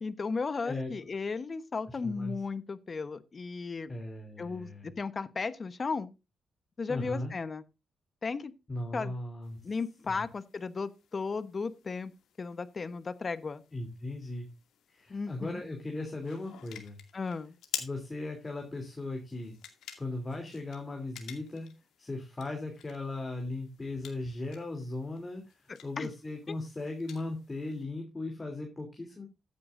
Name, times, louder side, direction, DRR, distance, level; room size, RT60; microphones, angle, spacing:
voice 1, 0.0-3.9 4.4-6.1 6.8-7.6 8.2-8.5 8.9-9.1 9.6-12.1 12.4-13.6 15.1-15.6 17.1-17.5 25.7-26.1, left 4 dB, 35° left, 1.0 m, -35 dB
voice 2, 1.9-2.4 3.9-4.9 6.9-7.3 8.7-9.6 10.1-10.3 13.7-14.5 14.9-17.0 17.8-19.6 20.0-21.7 22.0-29.2, left 2 dB, 20° left, 3.1 m, -38 dB
sound 1, 9.4-27.8, left 9 dB, 85° left, 2.3 m, -50 dB
14.5 x 9.5 x 2.6 m
cardioid pair, 95°, 0 cm